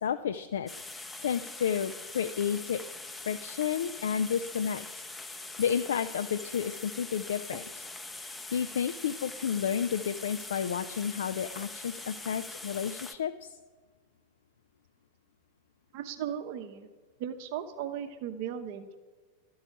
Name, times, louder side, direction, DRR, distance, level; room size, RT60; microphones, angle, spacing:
voice 1, 0.0-2.8 3.3-4.9 5.6-7.9 8.5-13.5, left 8 dB, 65° left, 10 dB, 0.3 m, -31 dB
sound 1, 0.7-13.2, left 2 dB, 10° left, 0.5 m, -43 dB
voice 2, 15.9-16.9 17.2-19.0, right 9 dB, 45° right, 7 dB, 0.8 m, -37 dB
12.5 x 4.7 x 5.8 m, 1.4 s
figure-of-eight pair, 90°, 0 cm